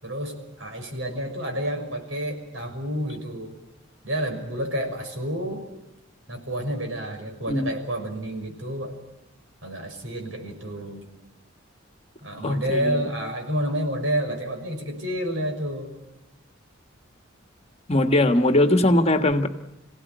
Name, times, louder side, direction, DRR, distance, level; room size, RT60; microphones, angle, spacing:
voice 1, 0.0-3.5 4.0-5.6 6.3-8.9 9.6-11.1 12.2-15.9, equal, 70° right, 4 dB, 6.3 m, -29 dB
voice 2, 12.4-13.0 17.9-19.5, left 1 dB, 30° left, 7 dB, 1.5 m, -20 dB
27.0 x 17.5 x 9.4 m, 0.95 s
head